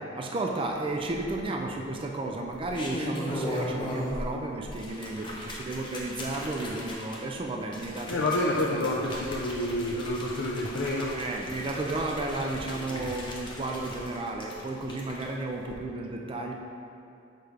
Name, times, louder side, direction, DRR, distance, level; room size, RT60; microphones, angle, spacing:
voice 1, 0.0-8.2 8.7-9.0 11.1-16.5, right 2 dB, 25° right, 1 dB, 0.4 m, -33 dB
sound 1, 1.0-1.7 2.5-4.3 4.6-15.2 15.6-15.7, left 1 dB, 25° left, 0.8 m, -38 dB
voice 2, 8.1-11.2 12.7-13.1, left 1 dB, 75° left, -4 dB, 0.5 m, -29 dB
6.6 x 3.2 x 4.9 m, 2.6 s
head